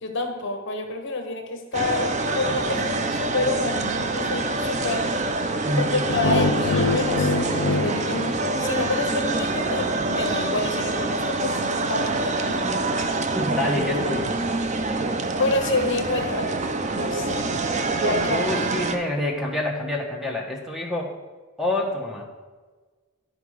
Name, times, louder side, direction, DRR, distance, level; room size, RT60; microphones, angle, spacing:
voice 1, 0.0-5.3 5.8-12.9 15.4-17.6 18.0-18.5, left 2 dB, 60° left, 4 dB, 1.0 m, -28 dB
sound 1, 1.7-19.0, right 2 dB, 35° right, 0.5 m, -26 dB
voice 2, 5.6-6.1 13.3-14.4 18.3-21.1 21.6-22.3, left 1 dB, ahead, 1 dB, 1.1 m, -27 dB
sound 2, 6.1-9.2, left 3 dB, 85° left, 0.6 m, -25 dB
11.0 x 5.0 x 4.9 m, 1.3 s
head